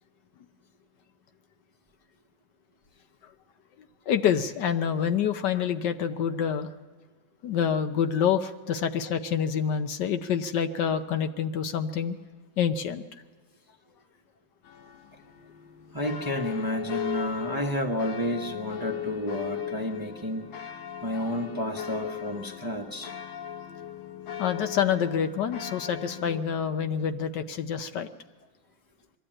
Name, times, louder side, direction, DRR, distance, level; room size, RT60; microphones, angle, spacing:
voice 1, 4.1-6.7 7.4-12.2 12.6-13.0 24.4-28.1, left 8 dB, 70° left, 8 dB, 1.4 m, -27 dB
sound 1, 14.6-26.4, left 10 dB, 85° left, 1.7 m, -38 dB
voice 2, 15.9-20.5 21.0-23.1, equal, 15° right, 2 dB, 0.9 m, -31 dB
22.5 x 13.5 x 8.9 m, 1.5 s
omnidirectional pair, 2.0 m